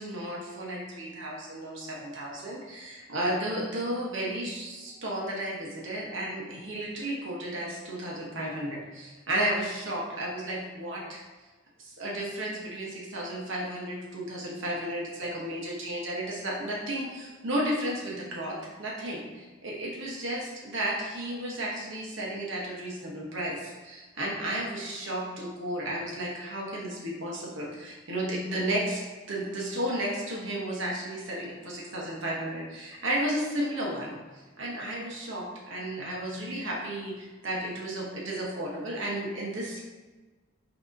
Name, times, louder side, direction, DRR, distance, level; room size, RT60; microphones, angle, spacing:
voice 1, 0.0-11.2 11.8-34.2 34.6-39.8, right 1 dB, 70° right, -4 dB, 1.0 m, -33 dB
6.0 x 2.8 x 2.6 m, 1.3 s
head